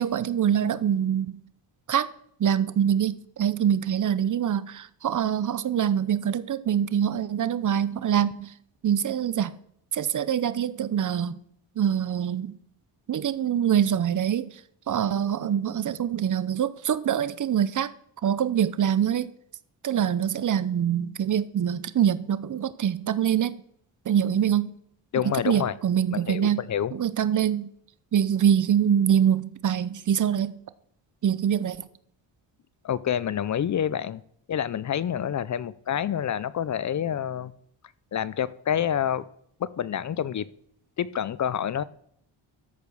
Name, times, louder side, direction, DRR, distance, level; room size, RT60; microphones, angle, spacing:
voice 1, 0.0-1.4 1.9-2.1 2.4-8.5 8.8-9.6 9.9-11.4 11.8-12.6 13.1-14.5 14.9-17.9 18.2-19.3 19.8-23.5 24.1-24.7 25.5-26.6 26.9-27.7 28.1-30.6 31.2-31.8, right 9 dB, 40° right, 0.7 m, -24 dB
voice 2, 25.1-25.8 26.1-26.9 32.8-34.2 34.5-37.5 38.1-39.3 39.6-40.5 41.0-41.8, left 9 dB, 40° left, 0.5 m, -27 dB
13.5 x 5.2 x 6.2 m
cardioid pair, 100°, 46 cm